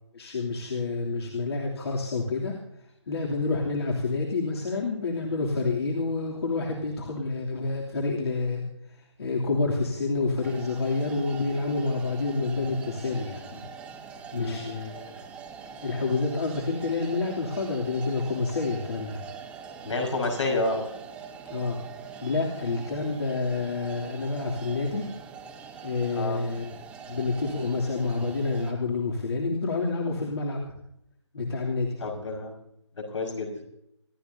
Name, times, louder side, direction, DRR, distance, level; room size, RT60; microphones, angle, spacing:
voice 1, 0.1-2.6 3.1-8.6 9.2-13.6 14.3-15.1 15.8-19.2 21.4-21.8 22.2-25.1 25.8-26.7 27.1-30.6 31.3-32.0, left 3 dB, 60° left, -2 dB, 3.0 m, -28 dB
sound 1, 10.4-28.7, right 6 dB, 5° right, 1.3 m, -43 dB
voice 2, 19.8-20.8 26.1-26.4 32.0-32.5 33.1-33.5, left 2 dB, 80° left, 1 dB, 5.8 m, -29 dB
26.0 x 13.5 x 2.8 m, 0.78 s
figure-of-eight pair, 155°, 15 cm